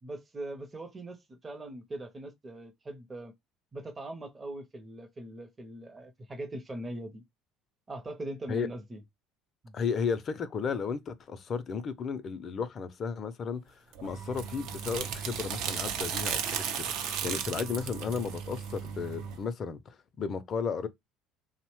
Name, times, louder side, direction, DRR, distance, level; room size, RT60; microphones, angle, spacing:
voice 1, 0.0-3.3 3.7-7.2 7.9-9.0 9.6-9.7, right 1 dB, 25° right, 0.6 m, -41 dB
voice 2, 9.7-20.9, left 6 dB, 45° left, 0.5 m, -34 dB
sound 1, 13.9-19.4, right 8 dB, 70° right, 0.5 m, -35 dB
2.7 x 2.0 x 3.0 m
supercardioid pair, 80°, 0 cm